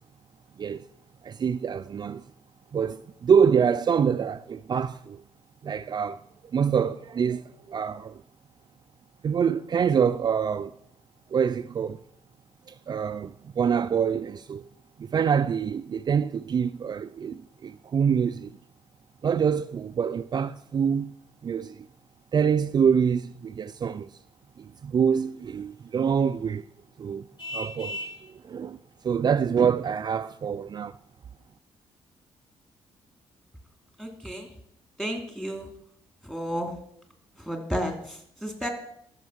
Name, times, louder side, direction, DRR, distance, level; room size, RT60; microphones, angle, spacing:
voice 1, 1.2-2.2 2.7-5.2 5.6-6.2 6.5-8.2 9.2-10.7 11.3-12.0 12.7-14.7 15.0-18.5 19.2-21.1 21.4-21.8 22.3-24.1 24.6-26.6 27.0-27.3 27.5-28.8 29.0-31.0, right 7 dB, 40° right, 0.4 m, -25 dB
Vehicle horn car horn honking, 27.4-28.2, left 1 dB, 45° left, 3.5 m, -35 dB
voice 2, 34.0-34.5 35.0-35.7 36.2-36.7 37.4-38.7, equal, 5° left, 2.7 m, -32 dB
13.5 x 6.6 x 6.3 m
cardioid pair, 90°, 11 cm